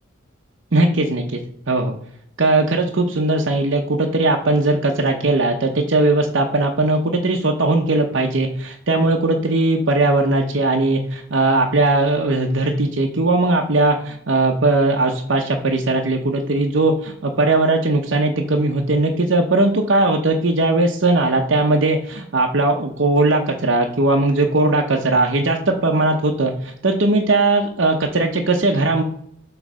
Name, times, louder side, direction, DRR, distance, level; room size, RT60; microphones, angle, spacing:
voice 1, 0.7-1.4 1.7-2.0 2.4-29.0, right 2 dB, 70° right, 1 dB, 0.8 m, -19 dB
7.7 x 3.2 x 6.2 m, 0.67 s
head